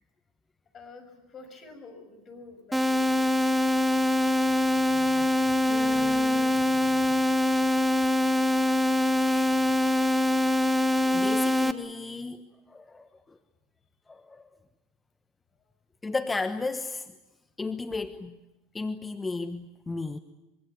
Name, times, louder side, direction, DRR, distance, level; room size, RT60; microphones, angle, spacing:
voice 1, 0.7-3.5, left 3 dB, 35° left, 8 dB, 6.7 m, -48 dB
sound 1, 2.7-11.7, left 1 dB, 5° right, 1.4 m, -24 dB
voice 2, 3.8-4.1 4.5-7.2 9.2-10.5 11.0-13.4 14.1-14.5 16.0-17.1 17.6-18.4 18.7-20.2, left 3 dB, 15° left, 9 dB, 1.2 m, -36 dB
25.5 x 24.0 x 8.4 m, 1.0 s
hypercardioid pair, 85°, 0 cm